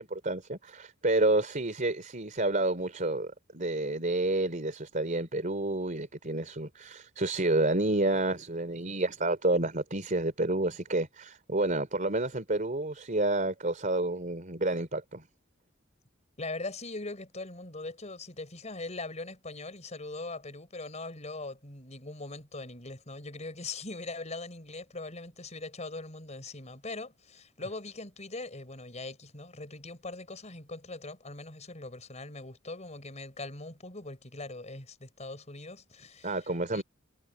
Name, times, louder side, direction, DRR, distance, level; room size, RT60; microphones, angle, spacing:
voice 1, 0.0-15.3 36.2-36.8, right 2 dB, 40° right, 3.7 m, -29 dB
voice 2, 16.4-36.8, left 2 dB, 35° left, 5.1 m, -41 dB
head